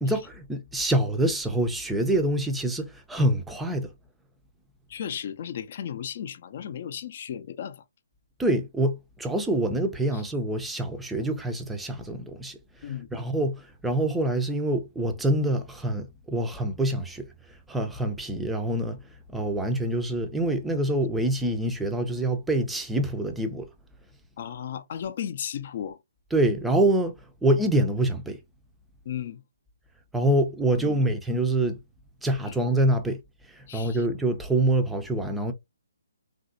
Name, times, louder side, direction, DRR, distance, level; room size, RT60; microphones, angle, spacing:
voice 1, 0.0-3.9 8.4-17.3 17.7-23.7 26.3-28.4 30.1-31.8 32.2-33.2 33.5-35.5, right 1 dB, 5° right, 0.5 m, -26 dB
voice 2, 4.9-7.8 12.8-13.1 24.4-26.0 29.0-29.4 30.8-31.0 32.5-32.6 33.7-34.0, left 9 dB, 45° left, 0.5 m, -35 dB
3.1 x 2.6 x 2.5 m
figure-of-eight pair, 140°, 0 cm